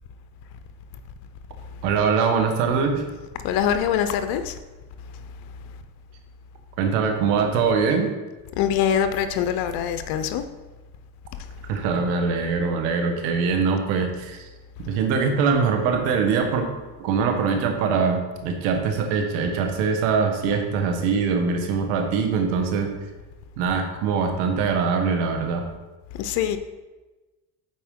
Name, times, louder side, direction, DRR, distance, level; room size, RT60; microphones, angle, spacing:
voice 1, 1.8-3.0 6.8-8.1 11.7-14.4 14.9-16.7 17.0-22.9 23.6-25.7, right 5 dB, 90° right, 4 dB, 1.2 m, -23 dB
voice 2, 3.4-4.6 8.6-10.4 26.1-26.6, left 9 dB, 70° left, 9 dB, 0.7 m, -23 dB
9.1 x 4.3 x 3.7 m, 1.2 s
supercardioid pair, 95°, 37 cm